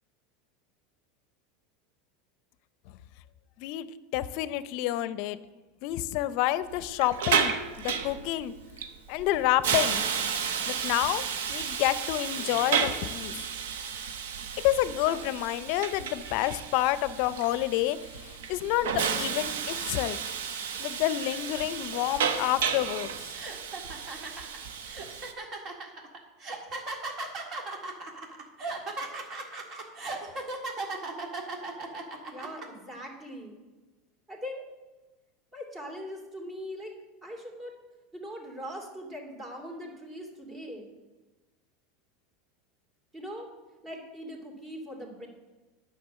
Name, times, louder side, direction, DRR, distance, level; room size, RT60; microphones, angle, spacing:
voice 1, 3.6-5.4 5.8-8.5 9.1-10.0 10.7-13.3 14.6-20.2 20.8-23.1, left 14 dB, 60° left, 15 dB, 0.6 m, -29 dB
Hiss, 6.7-25.3, right 6 dB, 85° right, 0.9 m, -32 dB
sound 1, 22.6-22.8 23.3-32.6, right 3 dB, 40° right, 1.8 m, -37 dB
voice 2, 32.3-33.6 34.3-34.6 35.5-36.9 37.2-37.7 38.1-40.9 43.1-43.5 43.8-45.3, equal, 20° right, 2 dB, 2.6 m, -41 dB
9.5 x 6.0 x 7.4 m, 1.2 s
supercardioid pair, 125°, 0 cm